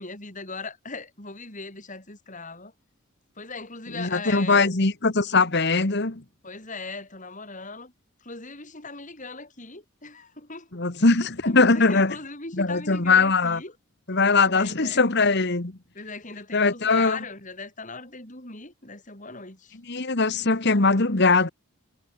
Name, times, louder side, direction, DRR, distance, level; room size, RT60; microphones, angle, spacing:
voice 1, 0.0-2.7 3.4-4.7 6.4-7.9 8.2-11.1 11.4-13.8 14.4-15.0 15.9-19.8, left 3 dB, 35° left, 6.9 m, -39 dB
voice 2, 3.9-6.2 10.7-12.1 12.5-13.6 14.1-15.7 16.5-17.2 19.9-21.5, left 3 dB, 55° left, 1.7 m, -21 dB
head